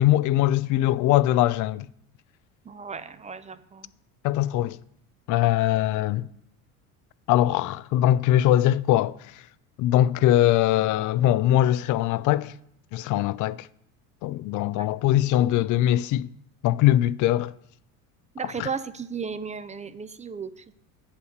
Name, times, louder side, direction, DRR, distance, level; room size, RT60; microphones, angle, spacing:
voice 1, 0.0-1.9 4.2-4.8 5.3-6.3 7.3-9.4 9.8-12.5 12.9-13.7 14.2-16.3 16.6-17.5 18.6-18.7, left 13 dB, 50° left, 0.4 m, -21 dB
voice 2, 2.6-3.9 14.8-14.9 18.3-20.7, right 6 dB, 15° right, 0.5 m, -35 dB
9.2 x 5.7 x 6.5 m
supercardioid pair, 85°, 42 cm